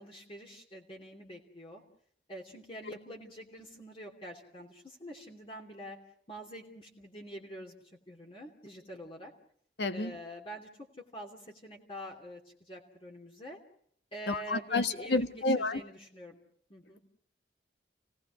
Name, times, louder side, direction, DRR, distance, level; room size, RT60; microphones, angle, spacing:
voice 1, 0.0-1.8 2.3-6.0 6.3-9.3 9.9-10.7 11.0-13.6 14.1-16.4 16.7-17.0, right 1 dB, 30° left, 3.0 m, -46 dB
voice 2, 9.8-10.1 14.3-15.8, left 3 dB, 80° left, 1.5 m, -30 dB
30.0 x 18.5 x 6.4 m
head